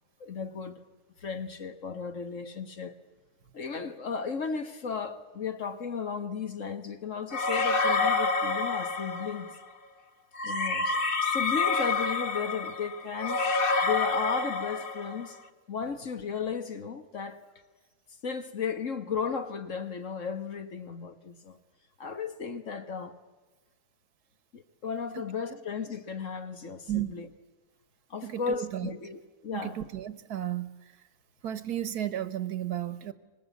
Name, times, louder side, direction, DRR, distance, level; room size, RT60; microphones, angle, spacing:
voice 1, 0.2-0.8 1.2-2.9 3.5-9.5 10.4-13.4 13.8-15.4 15.7-17.4 18.2-21.6 22.0-23.1 24.5-27.3 28.1-29.8, left 6 dB, 50° left, 1.6 m, -35 dB
sound 1, 7.3-9.5 10.4-15.3, left 4 dB, 35° left, 1.3 m, -28 dB
voice 2, 28.2-28.9 29.5-30.7 31.4-33.1, right 12 dB, 75° right, 1.6 m, -33 dB
25.0 x 21.0 x 8.3 m
omnidirectional pair, 1.7 m